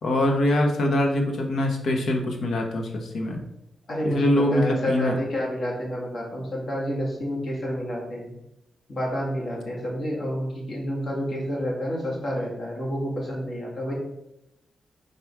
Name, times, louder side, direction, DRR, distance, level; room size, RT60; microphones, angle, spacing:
voice 1, 0.0-3.4 4.0-5.1, left 1 dB, 75° left, 2 dB, 1.2 m, -23 dB
voice 2, 3.9-8.3 8.9-13.9, equal, 55° left, -3 dB, 2.3 m, -29 dB
5.1 x 4.2 x 4.8 m, 0.86 s
wide cardioid pair, 110°, 0 cm